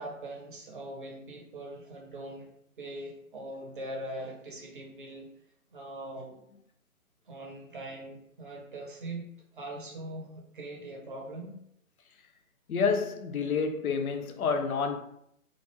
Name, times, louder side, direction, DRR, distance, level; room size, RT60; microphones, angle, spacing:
voice 1, 0.0-2.5 2.8-5.3 5.7-6.4 7.3-9.3 9.5-11.6, right 1 dB, 40° right, 0.6 m, -41 dB
voice 2, 12.7-15.0, left 5 dB, 80° left, 0.6 m, -28 dB
2.5 x 2.0 x 2.9 m
hypercardioid pair, 155°, 42 cm